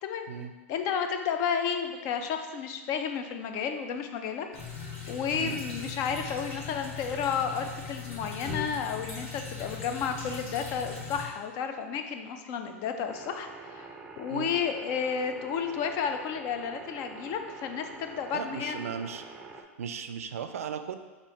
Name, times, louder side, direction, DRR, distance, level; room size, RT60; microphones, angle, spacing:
voice 1, 0.7-4.5 4.9-18.8, left 7 dB, 45° left, 6 dB, 0.5 m, -32 dB
sound 1, 4.5-11.3, left 5 dB, 70° left, 1.3 m, -39 dB
sound 2, 13.1-19.6, right 4 dB, 15° right, 0.5 m, -46 dB
voice 2, 18.3-19.2 19.8-21.0, right 7 dB, 80° right, 9 dB, 0.3 m, -36 dB
4.3 x 2.6 x 4.4 m, 1.3 s
hypercardioid pair, 105°, 8 cm